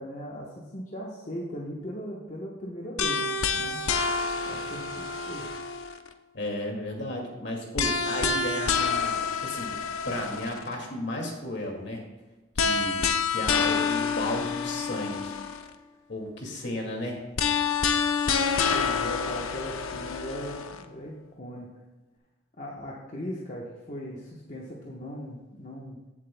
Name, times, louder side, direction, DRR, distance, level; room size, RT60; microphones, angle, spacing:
voice 1, 0.0-3.8 4.5-5.5 18.7-21.7 22.6-26.0, equal, 35° left, -3 dB, 1.0 m, -38 dB
sound 1, 3.0-6.1 7.8-10.7 12.6-15.7 17.4-20.8, left 5 dB, 85° left, 0.7 m, -28 dB
voice 2, 6.3-9.8 10.0-12.0 12.5-15.4 16.1-17.2, left 1 dB, 55° left, 0 dB, 2.2 m, -34 dB
16.0 x 7.4 x 2.2 m, 1.2 s
head